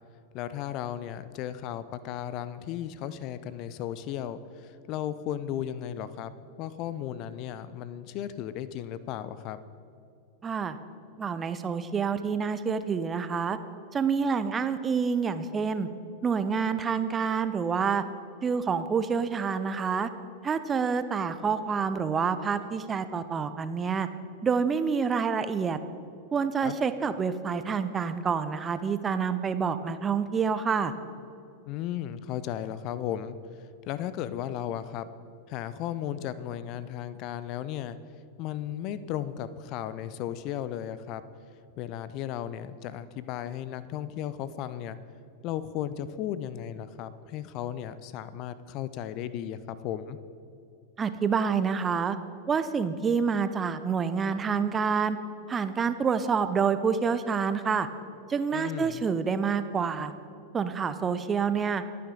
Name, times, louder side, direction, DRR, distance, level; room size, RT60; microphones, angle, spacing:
voice 1, 0.3-9.6 26.6-26.8 31.7-33.4 33.8-35.1 35.5-38.0 38.4-41.2 41.8-45.0 45.4-50.2 58.5-59.0, left 11 dB, 40° left, 14 dB, 0.7 m, -35 dB
voice 2, 10.4-10.8 11.2-13.6 13.9-15.9 16.2-18.0 18.4-20.1 20.4-24.1 24.4-25.8 26.3-30.9 51.0-52.2 52.5-55.2 55.5-57.9 58.3-60.1 60.5-61.8, right 6 dB, 20° right, 11 dB, 0.8 m, -27 dB
28.0 x 9.6 x 3.9 m, 2.6 s
figure-of-eight pair, 90°, 0 cm